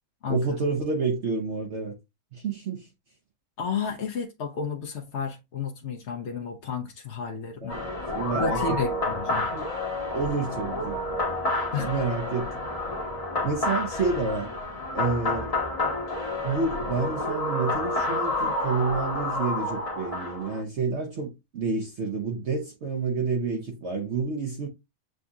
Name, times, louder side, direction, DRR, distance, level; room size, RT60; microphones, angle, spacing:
voice 1, 0.3-2.0 2.3-2.9 7.6-9.0 9.5-9.7 10.1-11.1 11.8-12.6 13.4-14.5 14.9-15.6 16.4-24.7, right 4 dB, 55° right, 0.9 m, -29 dB
voice 2, 3.6-7.8 8.3-9.5 11.7-11.9 13.9-14.0, left 5 dB, 60° left, 0.9 m, -32 dB
sound 1, 7.7-20.6, left 2 dB, 30° left, 0.9 m, -29 dB
7.7 x 2.7 x 2.3 m
omnidirectional pair, 1.6 m